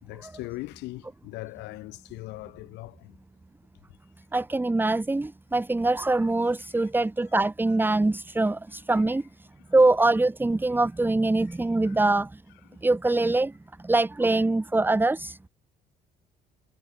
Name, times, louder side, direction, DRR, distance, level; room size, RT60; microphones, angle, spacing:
voice 1, 0.0-3.2 6.6-6.9 7.7-7.8 8.4-8.5 8.9-9.0 9.6-9.8 11.4-11.6 11.8-12.1, left 20 dB, 90° left, 6.2 m, -41 dB
voice 2, 4.3-12.4 12.8-13.5 13.8-15.4, right 2 dB, 10° right, 2.1 m, -24 dB
cardioid pair, 110°, 17 cm